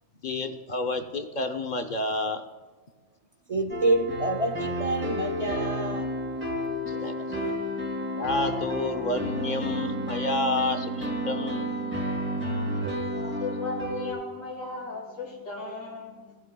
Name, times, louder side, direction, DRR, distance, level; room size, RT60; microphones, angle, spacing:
voice 1, 0.2-2.4 6.9-7.5 8.2-11.7, left 2 dB, 45° left, 7 dB, 0.7 m, -30 dB
voice 2, 3.5-6.1 6.9-7.4, right 2 dB, 50° right, 4 dB, 0.4 m, -28 dB
sound 1, 3.7-14.1, equal, 10° right, 2.6 m, -31 dB
voice 3, 13.0-16.4, left 3 dB, 85° left, -4 dB, 2.4 m, -36 dB
17.5 x 12.0 x 2.2 m, 1.4 s
omnidirectional pair, 1.4 m